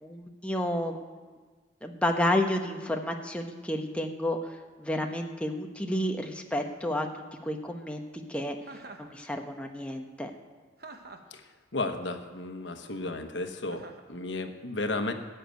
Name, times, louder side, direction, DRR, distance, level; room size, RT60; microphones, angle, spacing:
voice 1, 0.0-1.3 1.8-8.6 9.0-10.3, left 1 dB, 5° left, 3 dB, 0.9 m, -31 dB
Chuckle chortle, 8.6-9.1 10.8-11.4 13.7-14.1, right 3 dB, 55° right, 1.1 m, -46 dB
voice 2, 11.7-15.1, left 2 dB, 75° left, 6 dB, 1.2 m, -33 dB
13.5 x 6.7 x 9.2 m, 1.4 s
head